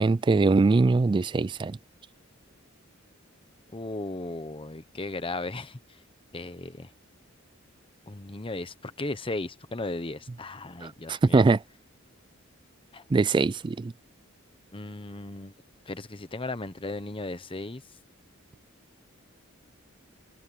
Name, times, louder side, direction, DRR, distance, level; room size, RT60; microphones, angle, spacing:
voice 1, 0.0-1.8 10.8-11.6 13.1-13.9, right 3 dB, 25° right, 0.3 m, -22 dB
voice 2, 3.7-5.8 6.3-6.9 8.1-11.4 12.9-13.0 14.7-15.5 15.9-17.8, left 2 dB, 25° left, 1.1 m, -36 dB
head